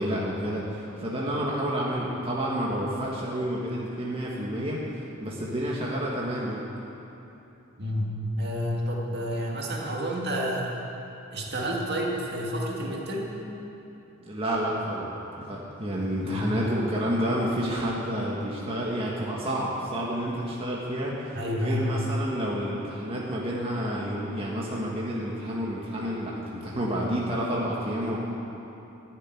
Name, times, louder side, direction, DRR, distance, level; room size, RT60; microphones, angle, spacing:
voice 1, 0.0-6.6 14.2-15.1 15.4-28.2, equal, 25° right, -5 dB, 1.7 m, -29 dB
voice 2, 7.8-10.7 11.3-13.3 16.2-16.6 21.3-21.9, equal, 55° right, -2 dB, 2.2 m, -29 dB
14.5 x 7.6 x 9.7 m, 3.0 s
head